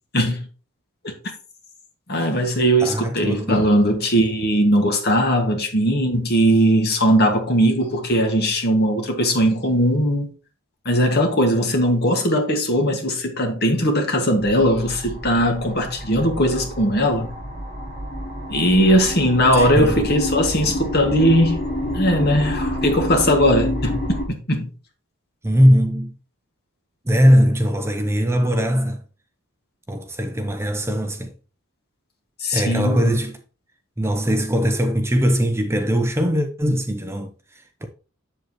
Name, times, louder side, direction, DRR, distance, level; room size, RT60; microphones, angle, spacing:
voice 1, 0.1-0.4 1.0-1.1 2.1-10.3 10.9-17.3 18.5-21.6 21.9-24.0 24.3-24.7 32.4-33.1, equal, 50° left, 1.8 m, -19 dB
voice 2, 2.8-3.8 19.5-20.1 25.4-26.1 27.0-29.0 29.9-31.3 32.5-33.4 34.0-37.9, equal, 10° right, 0.7 m, -20 dB
sound 1, 14.4-24.3, equal, 30° left, 4.3 m, -28 dB
7.8 x 7.6 x 3.0 m
head